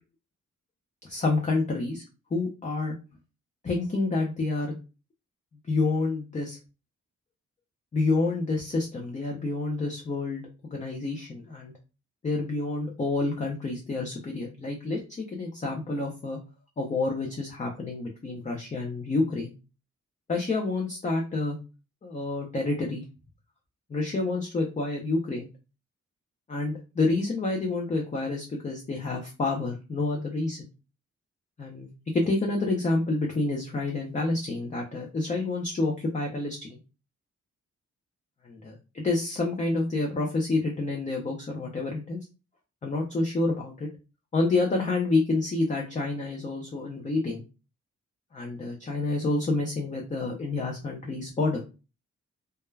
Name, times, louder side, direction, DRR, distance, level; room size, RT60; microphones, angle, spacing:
voice 1, 1.0-2.0 2.3-3.0 3.6-4.8 5.7-6.6 7.9-11.7 12.2-16.4 16.8-19.5 20.3-21.6 22.0-23.0 23.9-25.5 26.5-30.7 31.6-36.8 38.4-42.2 42.8-43.9 44.3-47.4 48.3-51.6, left 3 dB, 25° left, 0 dB, 0.4 m, -28 dB
2.2 x 2.1 x 3.1 m, 0.30 s
wide cardioid pair, 170°, 29 cm